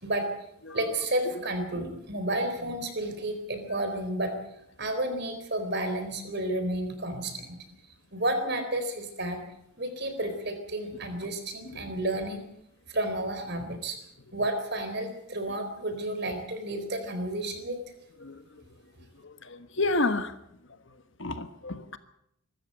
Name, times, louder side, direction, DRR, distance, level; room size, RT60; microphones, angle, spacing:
voice 1, 0.7-4.4 4.8-7.6 8.1-9.4 9.8-12.4 12.9-14.0 14.3-17.8, right 1 dB, 50° right, 8 dB, 4.1 m, -31 dB
voice 2, 19.2-20.3 21.2-22.0, left 2 dB, 55° left, 10 dB, 1.4 m, -30 dB
24.0 x 13.5 x 8.0 m, 0.77 s
head